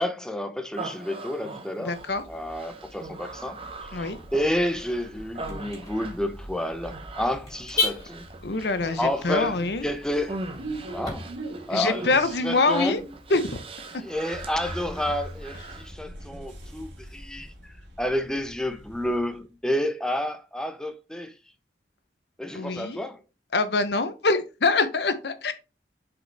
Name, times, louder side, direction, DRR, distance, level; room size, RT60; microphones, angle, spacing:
voice 1, 0.0-1.9 2.3-4.0 4.3-8.2 9.0-9.5 9.8-10.4 10.9-11.3 11.7-12.0 12.4-13.0 14.0-17.5 18.0-21.3 22.4-23.2, left 1 dB, 5° left, 0.5 m, -30 dB
Human voice, 0.7-15.9, right 3 dB, 30° right, 0.8 m, -41 dB
voice 2, 1.8-2.2 3.9-4.2 8.4-9.9 11.7-13.0 13.3-13.6 13.9-14.0 22.5-23.0 23.5-25.5, left 3 dB, 65° left, 0.7 m, -25 dB
Car / Alarm, 1.9-11.1, left 3 dB, 20° left, 3.0 m, -37 dB
sound 1, 3.8-19.4, right 1 dB, 85° right, 2.0 m, -42 dB
5.9 x 5.1 x 3.3 m
head